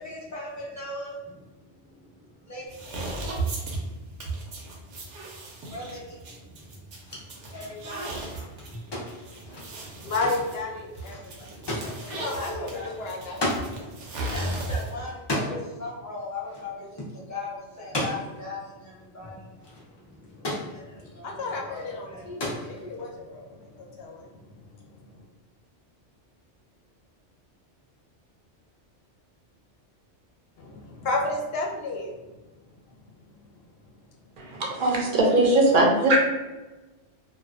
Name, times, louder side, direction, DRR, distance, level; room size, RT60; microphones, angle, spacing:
voice 1, 0.0-3.9 5.6-6.8 7.4-8.4 8.7-8.8 11.7-13.0 13.6-13.8 14.1-21.3 21.7-22.9, left 2 dB, 15° left, -7 dB, 0.7 m, -40 dB
sound 1, 2.7-15.1, right 2 dB, 80° right, 0.9 m, -36 dB
sound 2, 6.9-13.7 14.0-14.1 14.4-15.7 16.4-16.7 17.0-17.1 17.8-18.5 19.3-19.4 19.6-20.8 21.5-21.9 22.2-23.1, left 1 dB, 40° left, 0.3 m, -34 dB
voice 2, 9.8-11.5 12.0-14.1 21.1-24.4 24.8-25.2 30.6-32.2, left 2 dB, 65° left, 0 dB, 0.7 m, -33 dB
voice 3, 34.4-36.2, right 2 dB, 55° right, -1 dB, 0.6 m, -20 dB
2.4 x 2.2 x 2.4 m, 1.2 s
omnidirectional pair, 1.2 m